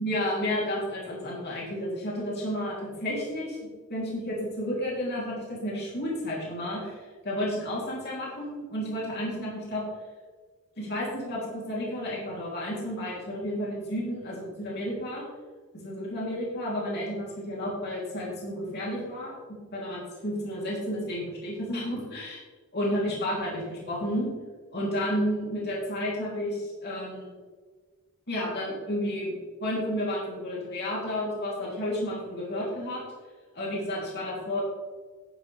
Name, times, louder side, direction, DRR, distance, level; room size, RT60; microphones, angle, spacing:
voice 1, 0.0-3.6 3.9-9.8 10.8-15.2 15.7-19.4 19.7-22.4 22.7-24.3 24.7-27.4 28.3-33.0 33.5-34.6, equal, 50° left, -5 dB, 3.3 m, -31 dB
11.0 x 9.6 x 3.5 m, 1.4 s
head